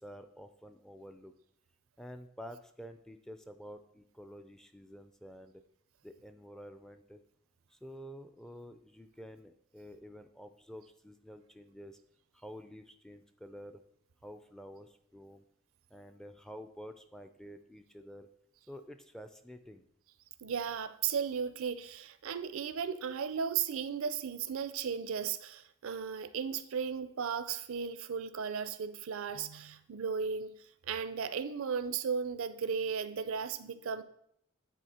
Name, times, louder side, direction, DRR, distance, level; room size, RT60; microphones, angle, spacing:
voice 1, 0.0-1.3 2.0-5.6 6.0-7.2 7.7-12.0 12.3-13.8 14.2-15.4 15.9-18.3 18.7-19.8, equal, ahead, 9 dB, 0.3 m, -49 dB
voice 2, 20.4-30.5 30.8-34.0, right 6 dB, 75° right, 13 dB, 0.5 m, -35 dB
9.2 x 4.0 x 4.2 m, 0.71 s
head